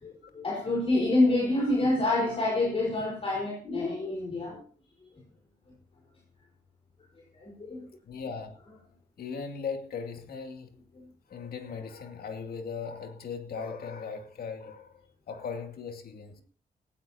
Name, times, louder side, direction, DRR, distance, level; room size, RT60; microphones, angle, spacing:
voice 1, 0.0-4.6 7.3-7.9 11.0-11.1, left 2 dB, 40° left, 4.2 m, -27 dB
voice 2, 8.0-8.6 9.2-10.7 11.3-16.4, left 5 dB, 90° left, 2.4 m, -38 dB
19.0 x 15.0 x 2.8 m
wide cardioid pair, 120°, 15 cm